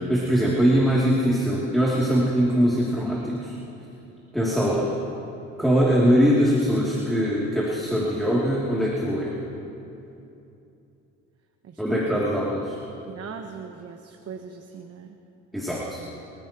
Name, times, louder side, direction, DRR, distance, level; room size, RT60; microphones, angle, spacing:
voice 1, 0.1-3.6 4.3-4.9 5.6-9.4 11.8-12.8 15.5-16.0, equal, ahead, -6 dB, 2.6 m, -22 dB
voice 2, 11.6-12.2 13.1-15.2, right 6 dB, 50° right, 3 dB, 1.1 m, -40 dB
25.0 x 14.5 x 3.0 m, 2.8 s
cardioid pair, 90°, 30 cm